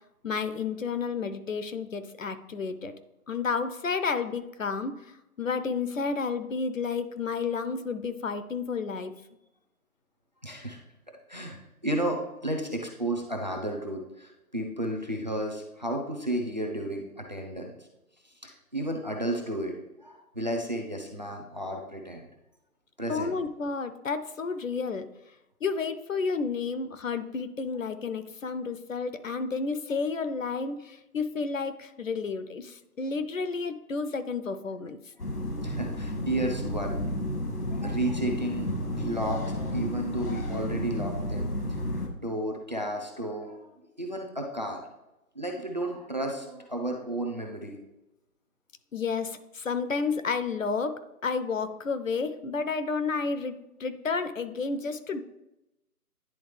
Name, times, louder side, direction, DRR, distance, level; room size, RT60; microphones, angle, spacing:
voice 1, 0.2-2.9 3.3-9.1 23.1-25.1 25.6-35.0 48.9-55.2, left 5 dB, 60° left, 11 dB, 0.7 m, -31 dB
voice 2, 10.4-10.8 11.3-17.7 18.2-19.7 20.0-22.3 23.0-23.3 35.6-37.0 37.7-41.9 42.2-43.7 44.0-44.8 45.3-47.8, right 1 dB, 30° right, 2 dB, 0.6 m, -33 dB
sound 1, 35.2-42.1, left 1 dB, 90° left, 1.9 m, -32 dB
10.0 x 3.7 x 3.2 m, 0.91 s
hypercardioid pair, 170°, 45 cm